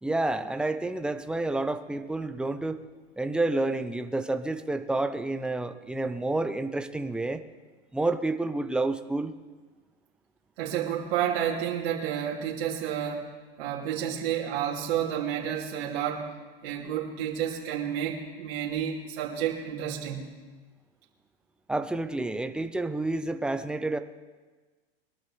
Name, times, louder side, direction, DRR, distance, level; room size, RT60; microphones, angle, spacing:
voice 1, 0.0-2.8 3.2-7.4 7.9-9.3 21.7-24.0, right 2 dB, 5° right, 8 dB, 0.7 m, -29 dB
voice 2, 10.6-13.3 13.6-16.3 16.6-20.3, right 9 dB, 65° right, -4 dB, 2.7 m, -30 dB
22.5 x 13.0 x 3.3 m, 1.3 s
hypercardioid pair, 125°, 31 cm